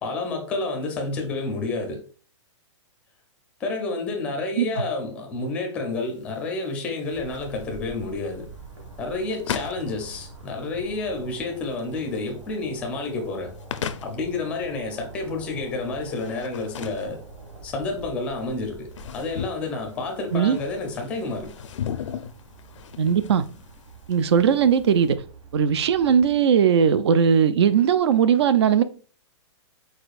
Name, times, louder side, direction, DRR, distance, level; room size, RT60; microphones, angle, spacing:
voice 1, 0.0-2.0 3.6-8.5 9.0-13.5 14.0-17.2 17.6-18.9 19.1-21.5, left 3 dB, 10° left, 0.5 m, -29 dB
sound 1, 5.9-25.1, left 8 dB, 85° left, 0.5 m, -39 dB
sound 2, 7.1-26.4, right 3 dB, 80° right, 1.7 m, -45 dB
voice 2, 23.0-23.4 24.1-25.2 25.5-28.8, right 7 dB, 60° right, 0.5 m, -19 dB
4.9 x 4.3 x 2.4 m
hypercardioid pair, 180°, 16 cm